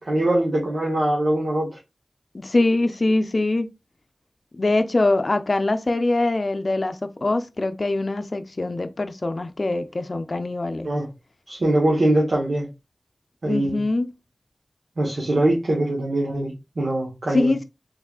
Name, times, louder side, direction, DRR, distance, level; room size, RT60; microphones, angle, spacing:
voice 1, 0.1-1.8 10.8-11.1 11.5-12.7 13.4-13.8 15.0-17.5, right 1 dB, 80° right, 1.0 m, -22 dB
voice 2, 2.3-3.7 4.5-10.9 13.4-14.1 17.3-17.6, left 2 dB, 60° left, 0.4 m, -23 dB
3.6 x 3.3 x 2.4 m
cardioid pair, 40°, 0 cm